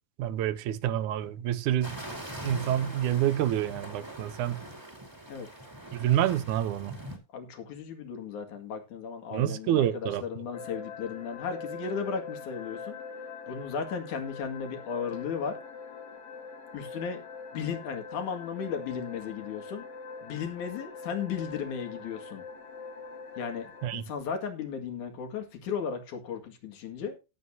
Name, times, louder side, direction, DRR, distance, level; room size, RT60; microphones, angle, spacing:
voice 1, 0.2-2.0 2.4-4.6 5.9-6.9 9.3-10.2 23.8-24.0, right 12 dB, 75° right, 2.1 m, -27 dB
sound 1, 1.8-7.2, right 1 dB, 10° right, 2.2 m, -42 dB
voice 2, 7.3-13.0 13.5-15.6 16.7-17.2 17.5-19.8 20.2-22.4 23.4-27.1, left 6 dB, 70° left, 3.4 m, -35 dB
sound 2, 10.5-24.0, left 5 dB, 50° left, 3.2 m, -43 dB
17.0 x 8.0 x 2.7 m
omnidirectional pair, 3.7 m